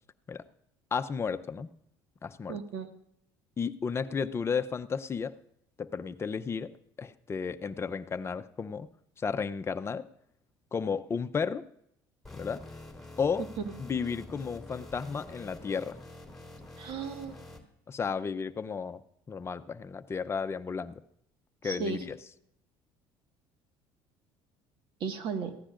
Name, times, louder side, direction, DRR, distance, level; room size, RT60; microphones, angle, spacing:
voice 1, 0.9-1.7 2.2-2.6 3.6-5.3 5.8-6.7 7.0-8.9 9.2-10.0 10.7-11.6 12.3-12.6 13.2-13.4 13.8-16.0 17.9-19.0 19.3-21.0 21.6-22.2, left 6 dB, 25° left, 10 dB, 0.7 m, -33 dB
voice 2, 2.5-2.9 13.6-13.7 16.8-17.4 21.6-22.0 25.0-25.5, right 5 dB, 60° right, 6 dB, 1.7 m, -35 dB
sound 1, 12.2-17.6, left 2 dB, 5° left, 3.3 m, -47 dB
22.5 x 15.0 x 2.5 m, 0.74 s
cardioid pair, 105°, 10 cm